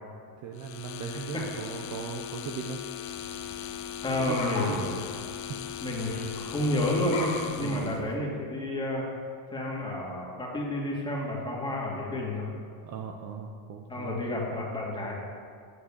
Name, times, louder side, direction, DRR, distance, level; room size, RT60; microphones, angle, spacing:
voice 1, 0.4-2.8 4.2-4.9 5.5-5.6 7.6-8.1 12.8-14.2, right 7 dB, 35° right, 3 dB, 0.7 m, -38 dB
sound 1, 0.5-8.0, left 10 dB, 35° left, 0.6 m, -39 dB
sound 2, 3.1-8.2, left 3 dB, 70° left, 2.2 m, -41 dB
voice 2, 4.0-5.0 5.8-9.1 9.5-12.5 13.9-15.1, left 1 dB, 10° left, -4 dB, 2.2 m, -30 dB
8.7 x 7.2 x 7.3 m, 2.3 s
cardioid pair, 140°, 49 cm